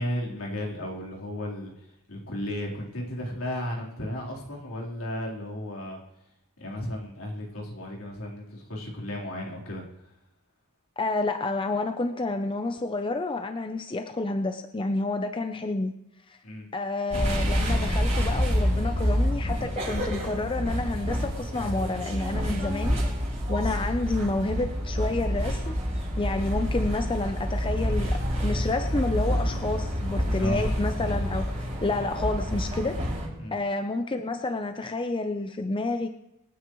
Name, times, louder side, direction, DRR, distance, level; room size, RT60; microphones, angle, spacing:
voice 1, 0.0-6.0 6.6-10.1 16.4-16.7 30.4-30.7 33.4-33.5, left 1 dB, 80° left, -3 dB, 3.9 m, -34 dB
voice 2, 11.0-15.9 16.3-16.4 16.7-23.0 23.5-25.7 26.2-31.5 31.8-33.0 33.5-36.1, left 2 dB, 25° left, 6 dB, 0.6 m, -29 dB
sound 1, 17.1-33.3, equal, 30° right, 6.6 m, -28 dB
25.5 x 9.7 x 3.1 m, 0.90 s
head